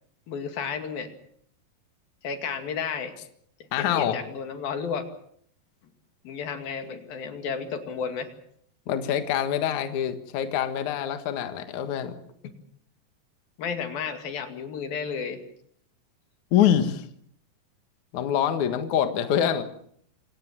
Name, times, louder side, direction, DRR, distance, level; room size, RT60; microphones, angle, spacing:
voice 1, 0.3-1.1 2.2-3.1 3.8-5.1 6.2-8.3 13.6-15.4, left 6 dB, 85° left, 6 dB, 4.2 m, -32 dB
voice 2, 3.7-4.2 8.9-12.1 16.5-17.0 18.1-19.6, left 9 dB, 60° left, 8 dB, 2.8 m, -25 dB
26.5 x 17.5 x 7.5 m, 0.65 s
omnidirectional pair, 4.1 m